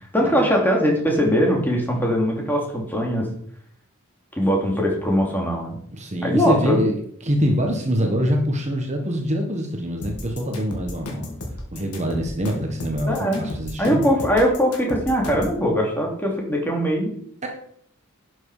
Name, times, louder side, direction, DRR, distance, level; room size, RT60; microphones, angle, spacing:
voice 1, 0.1-3.3 4.4-5.8 6.2-6.8 13.1-13.5 13.8-17.1, equal, 10° left, -1 dB, 2.8 m, -21 dB
voice 2, 5.9-6.9 7.2-11.3 11.7-14.0 17.4-17.5, equal, 30° right, 2 dB, 1.5 m, -24 dB
sound 1, 10.0-15.6, left 1 dB, 85° left, 2.8 m, -33 dB
12.0 x 7.9 x 5.0 m, 0.65 s
head